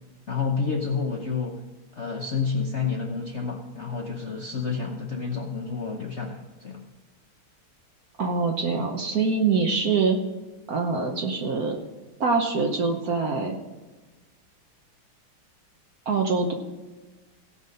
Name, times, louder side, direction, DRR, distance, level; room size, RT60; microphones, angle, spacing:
voice 1, 0.3-1.6 1.9-6.8, left 5 dB, 50° left, 1 dB, 0.8 m, -29 dB
voice 2, 8.2-10.2 10.7-11.8 12.2-13.6 16.1-16.5, right 4 dB, 55° right, 3 dB, 1.2 m, -24 dB
16.5 x 6.1 x 5.3 m, 1.2 s
omnidirectional pair, 2.4 m